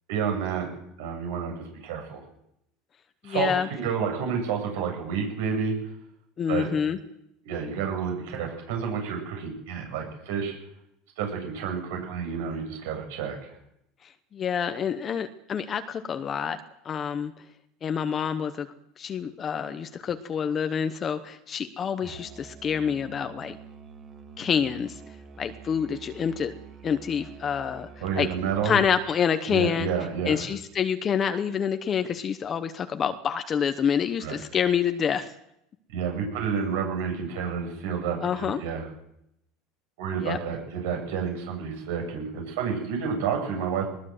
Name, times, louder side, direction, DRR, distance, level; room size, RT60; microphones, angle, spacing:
voice 1, 0.1-0.7 1.0-2.2 3.2-5.7 6.5-6.7 7.4-10.5 11.2-13.4 28.0-28.7 29.5-30.4 34.2-34.4 35.9-38.9 40.0-43.9, right 6 dB, 80° right, 2 dB, 7.8 m, -30 dB
voice 2, 3.2-3.7 6.4-7.0 14.3-16.6 16.8-17.3 17.8-18.7 19.0-23.6 24.4-24.9 25.4-26.5 26.8-27.9 28.2-28.3 28.6-29.9 30.2-35.3 38.2-38.6 40.2-40.4, left 7 dB, 20° left, 8 dB, 0.9 m, -27 dB
Musical instrument, 22.0-29.0, right 6 dB, 25° right, 1.9 m, -47 dB
21.0 x 20.0 x 7.8 m, 0.80 s
cardioid pair, 175°, 0 cm